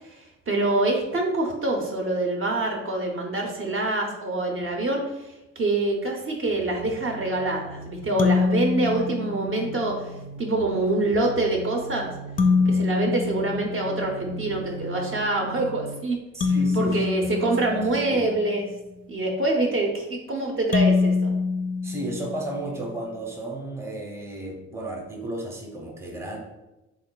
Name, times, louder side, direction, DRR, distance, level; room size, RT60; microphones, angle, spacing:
voice 1, 0.0-12.1 12.7-16.2 16.4-18.7 19.1-21.3, right 2 dB, 45° right, 1 dB, 0.7 m, -26 dB
sound 1, 6.8-16.2, right 3 dB, 80° right, 0.8 m, -40 dB
sound 2, 8.2-9.9 12.4-14.4 16.4-18.5 20.7-22.8, left 4 dB, 30° left, 0.4 m, -25 dB
voice 2, 16.3-16.9 17.9-18.2 21.8-26.4, right 1 dB, 10° right, 1 dB, 0.7 m, -33 dB
3.1 x 2.3 x 3.7 m, 0.98 s
cardioid pair, 90°, 30 cm